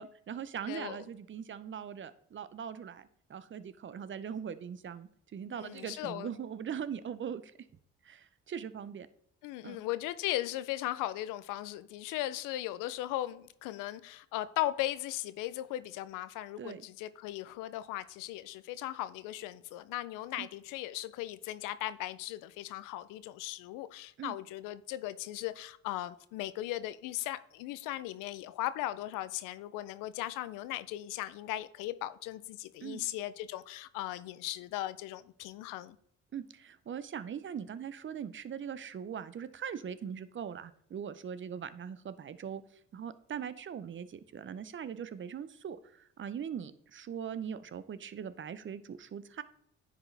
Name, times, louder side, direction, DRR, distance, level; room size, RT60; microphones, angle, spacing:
voice 1, 0.0-7.5 8.0-9.1 9.6-9.8 16.6-16.9 20.4-20.5 24.2-24.4 32.8-33.0 36.3-42.6 42.9-49.4, right 8 dB, 40° right, 0.6 m, -41 dB
voice 2, 0.7-1.0 5.5-6.3 9.4-36.0, left 15 dB, 85° left, 0.5 m, -38 dB
9.9 x 4.9 x 3.3 m
supercardioid pair, 70°, 31 cm